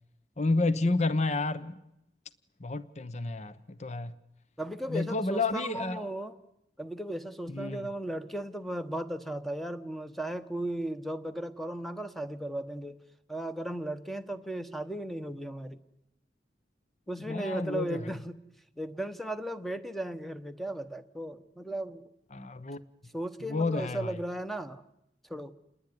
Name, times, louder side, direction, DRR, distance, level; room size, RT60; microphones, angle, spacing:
voice 1, 0.4-1.8 2.6-4.1 4.9-6.1 7.5-7.9 17.3-18.1 22.3-22.8 23.4-24.2, left 2 dB, 40° left, 1.0 m, -30 dB
voice 2, 4.6-6.3 6.8-13.0 13.3-15.8 17.1-18.4 18.8-22.0 23.1-24.8 25.3-25.5, right 1 dB, ahead, 1.0 m, -36 dB
28.5 x 20.0 x 9.6 m
head